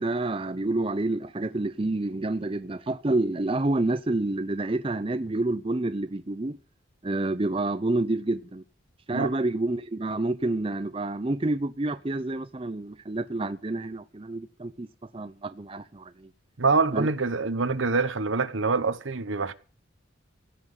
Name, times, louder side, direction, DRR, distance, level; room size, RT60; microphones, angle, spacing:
voice 1, 0.0-6.6 7.0-8.6 9.1-14.9 15.1-16.1 16.9-17.1, right 2 dB, 25° right, 0.6 m, -28 dB
voice 2, 16.6-19.5, right 4 dB, 75° right, 1.1 m, -25 dB
16.0 x 6.0 x 9.3 m
head